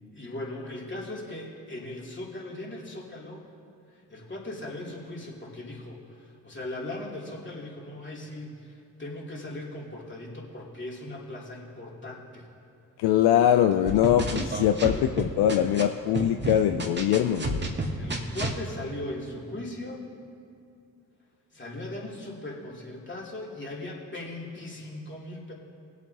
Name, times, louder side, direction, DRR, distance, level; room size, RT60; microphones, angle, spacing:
voice 1, 0.1-3.5 3.9-12.5 14.9-15.1 15.5-15.7 17.9-20.0 21.5-25.5, left 1 dB, 30° left, -4 dB, 3.1 m, -39 dB
voice 2, 13.0-17.7, left 10 dB, 70° left, 8 dB, 0.5 m, -22 dB
sound 1, 13.9-15.8 16.1-18.6, right 2 dB, 25° right, 1.7 m, -30 dB
20.5 x 8.2 x 2.9 m, 2.6 s
hypercardioid pair, 50°, 40 cm